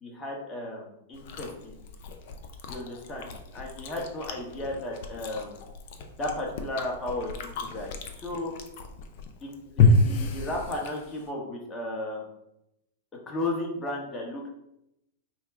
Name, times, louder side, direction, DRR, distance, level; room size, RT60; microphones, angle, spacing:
voice 1, 0.0-1.7 2.7-5.6 6.2-8.5 9.4-12.3 13.3-14.5, left 1 dB, 20° left, -1 dB, 1.0 m, -34 dB
Chewing mastication, 1.1-11.3, left 3 dB, 55° left, 0.5 m, -30 dB
4.5 x 2.1 x 3.5 m, 0.83 s
hypercardioid pair, 125°, 0 cm